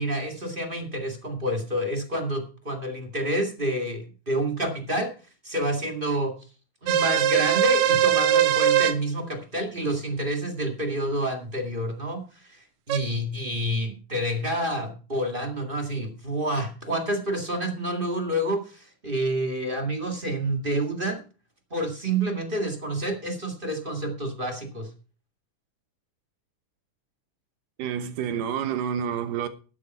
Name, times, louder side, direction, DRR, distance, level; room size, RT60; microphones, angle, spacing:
voice 1, 0.0-5.1 5.4-6.3 6.8-12.2 12.5-21.2 21.7-24.9, right 1 dB, 20° right, 1.6 m, -28 dB
sound 1, 6.9-8.9 12.9-13.0, right 10 dB, 75° right, 2.1 m, -21 dB
voice 2, 27.8-29.5, right 8 dB, 90° right, 2.8 m, -28 dB
12.5 x 8.7 x 5.5 m
omnidirectional pair, 3.7 m